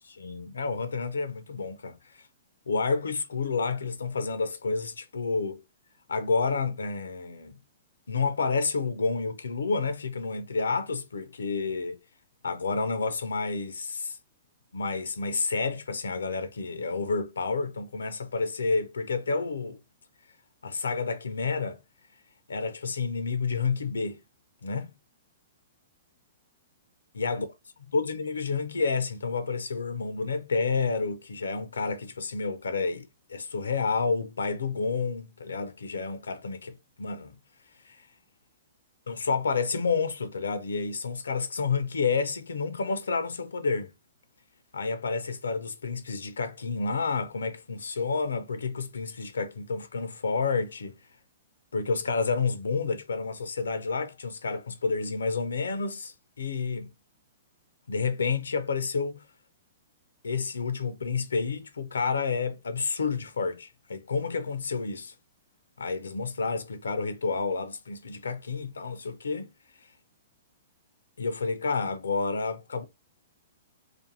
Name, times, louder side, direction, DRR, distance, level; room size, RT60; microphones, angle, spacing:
voice 1, 0.0-2.0 2.7-5.6 6.1-7.5 8.1-12.0 12.4-14.2 14.7-19.8 20.6-21.8 22.5-24.2 24.6-24.9 27.1-27.4 27.9-37.3 37.8-38.0 39.1-43.9 44.7-51.0 51.7-56.9 57.9-59.2 60.2-65.1 65.8-69.5 71.2-72.8, left 4 dB, 80° left, 0.4 m, -30 dB
2.5 x 2.5 x 2.6 m
hypercardioid pair, 120°, 0 cm